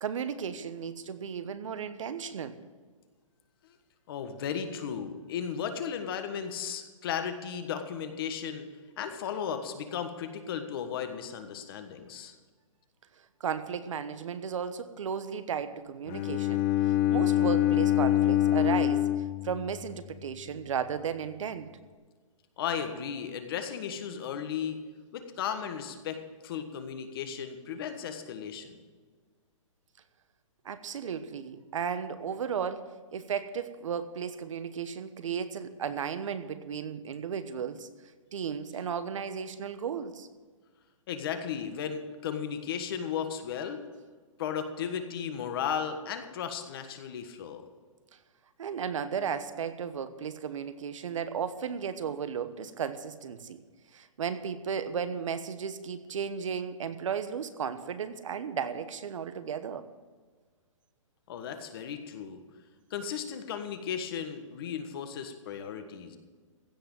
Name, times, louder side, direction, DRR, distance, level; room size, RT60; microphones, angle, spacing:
voice 1, 0.0-2.6 13.4-21.7 30.6-37.9 38.3-40.3 48.6-53.6 53.9-59.9, right 7 dB, 70° right, 11 dB, 1.1 m, -35 dB
voice 2, 4.1-8.7 9.0-12.3 22.6-24.8 25.1-28.8 41.1-43.8 44.4-47.7 61.3-62.4 62.9-66.2, left 8 dB, 45° left, 7 dB, 1.5 m, -35 dB
Bowed string instrument, 16.1-20.2, left 13 dB, 25° left, 0.5 m, -25 dB
15.5 x 5.9 x 8.8 m, 1.5 s
hypercardioid pair, 155°, 17 cm